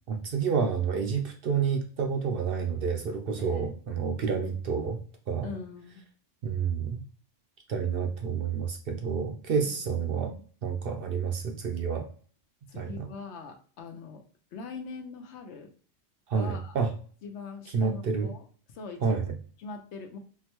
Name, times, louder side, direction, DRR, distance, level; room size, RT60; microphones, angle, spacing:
voice 1, 0.1-5.0 5.3-5.5 6.4-7.0 7.7-10.3 10.6-12.1 12.7-13.1 16.3-16.9 17.7-18.3 19.0-19.4, right 6 dB, 60° right, 3 dB, 0.7 m, -29 dB
voice 2, 3.4-3.7 5.4-6.0 9.6-9.8 10.0-10.4 12.7-14.2 14.5-15.7 16.3-16.8 17.2-18.5 18.7-19.0 19.6-20.2, left 5 dB, 75° left, 5 dB, 0.9 m, -42 dB
3.8 x 2.1 x 2.9 m, 0.44 s
omnidirectional pair, 1.2 m